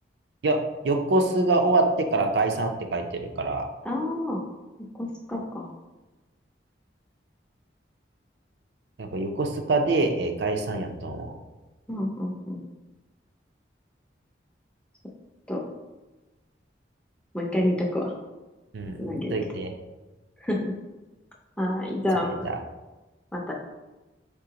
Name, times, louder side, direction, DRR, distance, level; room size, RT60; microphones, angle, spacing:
voice 1, 0.8-3.7 9.0-11.3 18.7-19.0 19.3-19.7 22.4-22.5, right 2 dB, 70° right, 4 dB, 0.5 m, -25 dB
voice 2, 3.8-4.4 5.0-5.7 11.9-12.6 15.5-15.6 17.3-18.1 19.0-19.3 20.4-20.7 21.6-22.5 23.3-23.5, left 1 dB, 5° left, -1 dB, 0.5 m, -28 dB
4.0 x 3.7 x 2.9 m, 1.1 s
head